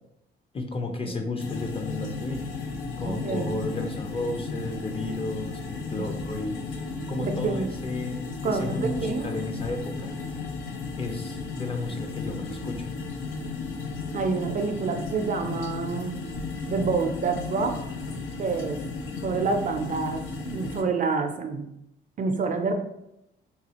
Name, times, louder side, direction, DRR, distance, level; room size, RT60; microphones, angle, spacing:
voice 1, 0.5-2.5 3.0-6.6 7.1-10.1 11.0-12.9, left 2 dB, 30° left, 4 dB, 0.6 m, -33 dB
sound 1, 1.4-20.8, left 4 dB, 90° left, 0.6 m, -34 dB
voice 2, 3.0-3.5 5.9-6.1 7.2-7.7 8.4-9.3 14.1-16.2 16.7-17.7 18.4-18.8 19.2-21.7 22.2-22.7, right 4 dB, 40° right, 5 dB, 0.5 m, -28 dB
4.0 x 2.3 x 2.9 m, 0.83 s
cardioid pair, 90°, 20 cm